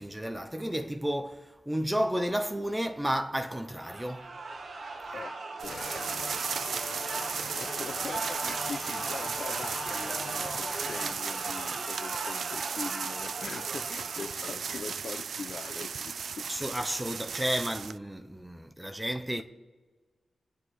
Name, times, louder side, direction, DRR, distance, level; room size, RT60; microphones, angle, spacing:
voice 1, 0.0-4.3 16.5-19.4, equal, 10° right, 0.8 m, -32 dB
sound 1, 3.7-14.6, right 3 dB, 50° right, 1.4 m, -39 dB
voice 2, 5.1-16.5, left 5 dB, 65° left, 1.0 m, -42 dB
sound 2, 5.6-11.2, left 4 dB, 85° left, 2.2 m, -43 dB
sound 3, 5.6-18.0, right 6 dB, 85° right, 0.4 m, -36 dB
29.5 x 9.9 x 4.1 m
wide cardioid pair, 180°, 0 cm